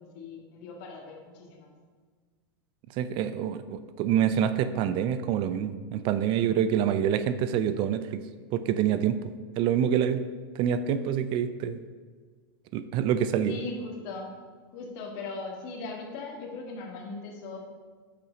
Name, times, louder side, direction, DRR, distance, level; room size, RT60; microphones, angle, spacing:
voice 1, 0.0-1.7 13.5-14.3 14.7-17.6, left 3 dB, 55° left, 1 dB, 1.7 m, -39 dB
voice 2, 3.0-8.2 8.5-9.2 9.6-10.2 10.5-11.8 12.7-13.5, right 9 dB, 45° right, 12 dB, 0.4 m, -26 dB
6.7 x 5.6 x 5.1 m, 1.5 s
hypercardioid pair, 120°, 12 cm